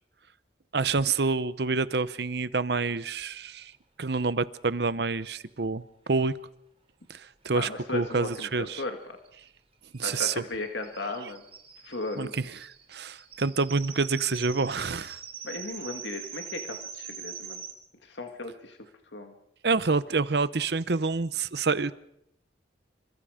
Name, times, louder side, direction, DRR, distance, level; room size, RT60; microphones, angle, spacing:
voice 1, 0.7-3.7 4.0-6.4 7.1-8.8 9.9-10.4 12.2-15.2 19.6-21.9, right 4 dB, 60° right, 15 dB, 0.8 m, -28 dB
voice 2, 7.5-9.2 10.0-11.4 11.8-12.3 15.4-17.6 18.0-18.8 19.1-19.3, left 2 dB, 75° left, 5 dB, 2.1 m, -36 dB
sound 1, 8.0-8.1 8.4-8.5 8.7-17.7, right 7 dB, 30° right, 3.1 m, -43 dB
27.5 x 25.0 x 5.1 m, 0.78 s
head